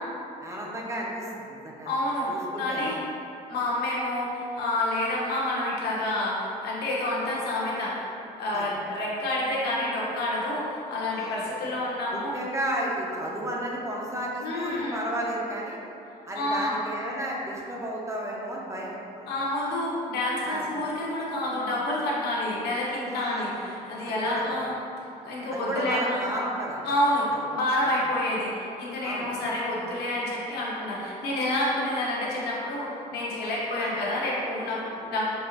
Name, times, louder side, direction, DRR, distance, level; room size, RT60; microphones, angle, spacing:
voice 1, 0.4-1.9 2.3-2.8 8.5-8.7 11.1-11.5 12.1-15.8 16.3-19.3 20.5-20.7 23.1-23.6 24.3-24.4 25.5-26.8 29.0-29.3 33.7-34.0, right 1 dB, 15° right, -3 dB, 0.5 m, -33 dB
voice 2, 1.8-3.0 3.5-8.1 8.4-12.3 14.4-15.0 16.3-16.8 19.3-24.7 25.2-26.3 26.8-35.2, left 1 dB, 70° left, -6 dB, 0.9 m, -28 dB
4.4 x 2.8 x 2.4 m, 2.8 s
cardioid pair, 110°, 17 cm